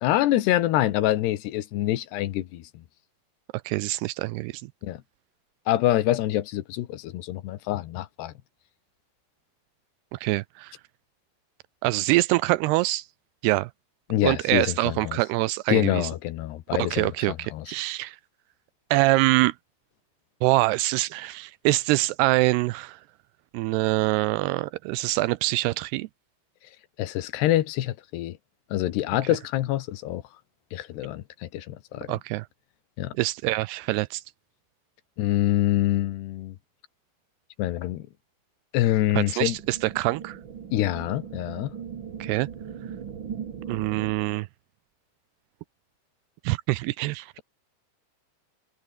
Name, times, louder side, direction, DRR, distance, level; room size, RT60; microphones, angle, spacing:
voice 1, 0.0-2.8 4.8-5.0 5.7-8.3 14.1-15.2 15.7-17.7 27.0-28.4 28.7-30.2 30.7-32.1 33.0-33.1 35.2-36.6 37.6-38.1 38.7-39.6 40.7-41.7, left 14 dB, 75° left, 3.3 m, -26 dB
voice 2, 3.7-4.7 10.1-10.7 11.8-13.1 13.4-13.7 14.2-16.1 16.8-18.2 18.9-19.5 20.4-23.0 23.5-26.1 32.1-32.5 33.2-34.2 39.1-40.4 42.2-42.5 43.7-44.5 46.4-47.4, right 19 dB, 85° right, 2.4 m, -25 dB
sound 1, 39.4-44.4, right 7 dB, 70° right, 1.1 m, -39 dB
omnidirectional pair, 5.0 m